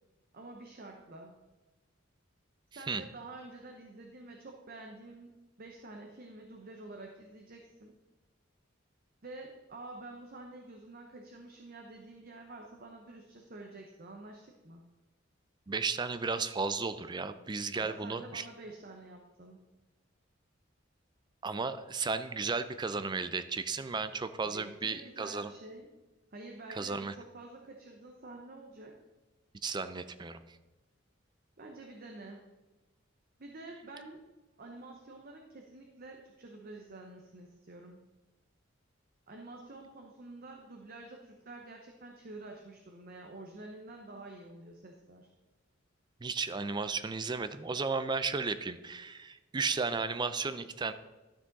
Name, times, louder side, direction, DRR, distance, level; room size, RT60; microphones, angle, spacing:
voice 1, 0.3-1.4 2.7-7.9 9.2-14.8 17.7-19.7 24.4-25.9 26.3-29.0 31.6-32.5 33.4-34.3 34.6-38.0 39.3-45.3, right 2 dB, 50° right, 2 dB, 0.9 m, -48 dB
voice 2, 15.7-18.5 21.4-25.5 26.7-27.1 29.6-30.4 46.2-50.9, right 4 dB, 25° right, 12 dB, 0.4 m, -34 dB
12.0 x 6.1 x 4.0 m, 1.1 s
head